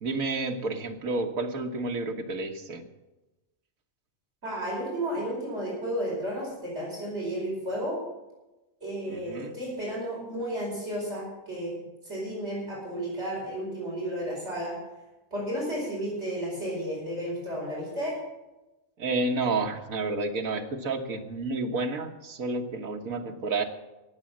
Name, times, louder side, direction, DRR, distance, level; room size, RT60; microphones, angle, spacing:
voice 1, 0.0-2.8 9.1-9.6 19.0-23.6, right 3 dB, 80° right, 4 dB, 1.8 m, -30 dB
voice 2, 4.4-8.0 8.8-14.8 15.3-18.2, equal, 55° right, -5 dB, 5.5 m, -33 dB
18.0 x 7.6 x 7.3 m, 1.0 s
omnidirectional pair, 1.4 m